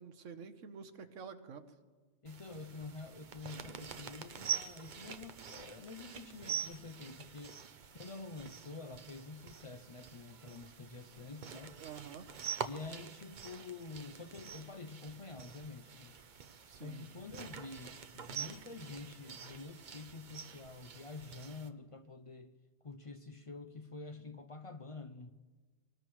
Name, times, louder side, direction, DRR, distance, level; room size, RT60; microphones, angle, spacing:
voice 1, 0.0-1.6 11.8-12.3 16.7-17.0, right 6 dB, 75° right, 1.3 m, -48 dB
voice 2, 2.2-7.6 7.9-11.8 12.6-16.2 16.6-22.5 22.8-25.3, left 3 dB, 40° left, 0.5 m, -48 dB
sound 1, 2.3-21.7, right 7 dB, 45° right, 0.7 m, -46 dB
24.0 x 19.5 x 3.1 m
omnidirectional pair, 1.3 m